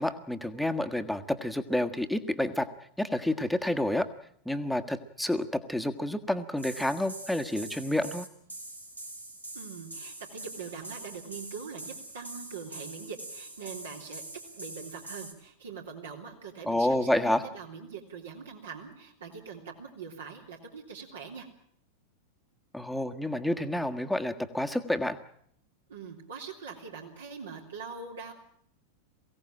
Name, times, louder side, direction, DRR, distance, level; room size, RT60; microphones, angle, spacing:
voice 1, 0.0-2.7 3.0-4.1 4.4-8.3 16.6-17.4 22.7-25.2, left 1 dB, ahead, 6 dB, 1.5 m, -29 dB
sound 1, 6.6-15.3, right 2 dB, 85° right, 3.1 m, -44 dB
voice 2, 9.5-14.2 14.5-21.5 25.9-28.3, right 5 dB, 65° right, 1 dB, 3.3 m, -43 dB
23.0 x 16.5 x 9.0 m, 0.67 s
figure-of-eight pair, 90°, 0 cm